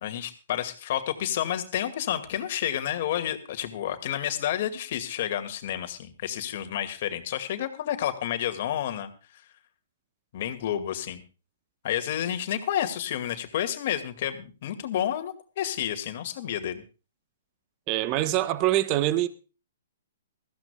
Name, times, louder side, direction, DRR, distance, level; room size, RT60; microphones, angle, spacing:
voice 1, 0.0-9.1 10.3-11.2 11.8-16.8, left 11 dB, 55° left, 2.2 m, -30 dB
voice 2, 17.9-19.3, right 14 dB, 35° right, 1.1 m, -24 dB
20.5 x 15.0 x 2.3 m
hypercardioid pair, 135°, 0 cm